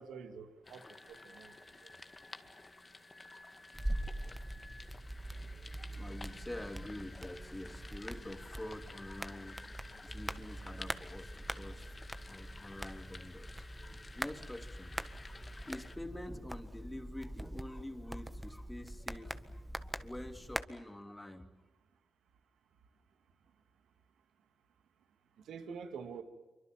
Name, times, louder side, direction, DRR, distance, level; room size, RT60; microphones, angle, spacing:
voice 1, 0.0-1.5 1.8-1.9 25.4-26.2, right 6 dB, 75° right, 8 dB, 2.3 m, -47 dB
sound 1, 0.6-16.0, left 3 dB, 30° left, 2.0 m, -53 dB
sound 2, 3.7-20.6, right 1 dB, 10° right, 1.6 m, -43 dB
voice 2, 5.8-9.7 10.0-11.9 12.3-15.0 15.6-21.5, left 1 dB, 15° left, 6 dB, 3.0 m, -47 dB
26.5 x 24.0 x 7.5 m, 1.2 s
supercardioid pair, 45°, 0 cm